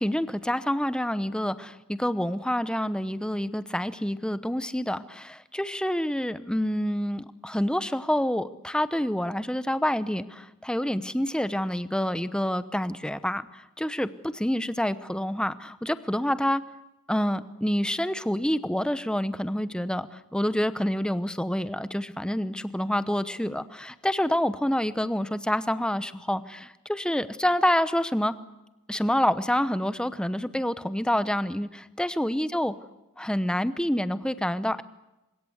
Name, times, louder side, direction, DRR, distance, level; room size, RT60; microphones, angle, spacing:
voice 1, 0.0-16.6 17.1-28.3 28.9-32.7 33.2-34.8, equal, 5° left, 13 dB, 0.9 m, -27 dB
24.5 x 22.0 x 8.1 m, 0.96 s
head